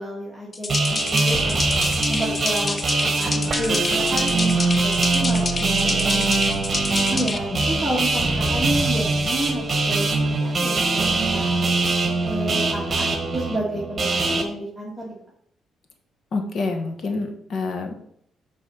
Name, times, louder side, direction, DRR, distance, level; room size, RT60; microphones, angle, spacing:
voice 1, 0.0-1.6 2.1-6.4 7.1-10.1 10.3-11.7 12.2-15.1, right 1 dB, ahead, -6 dB, 2.0 m, -30 dB
sound 1, 0.5-7.4, left 3 dB, 30° left, 0.7 m, -28 dB
sound 2, 0.7-14.4, right 3 dB, 35° right, 1.4 m, -22 dB
sound 3, 3.5-10.2, right 6 dB, 55° right, 0.6 m, -36 dB
voice 2, 16.3-17.9, left 3 dB, 60° left, 4 dB, 1.5 m, -27 dB
6.8 x 4.2 x 5.7 m, 0.69 s
cardioid pair, 90°, 0 cm